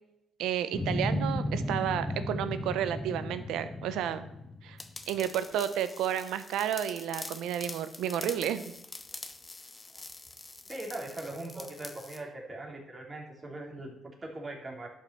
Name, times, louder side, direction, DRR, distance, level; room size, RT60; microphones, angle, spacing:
voice 1, 0.4-4.3 4.6-4.8 5.1-8.6, right 10 dB, 90° right, 12 dB, 0.9 m, -31 dB
sound 1, 0.7-5.0, left 1 dB, 10° left, 2.1 m, -34 dB
sound 2, 4.8-12.2, left 3 dB, 25° left, 1.1 m, -45 dB
voice 2, 10.6-14.9, right 2 dB, 25° right, 1 dB, 3.4 m, -41 dB
11.5 x 5.8 x 7.6 m, 0.85 s
cardioid pair, 90°, 0 cm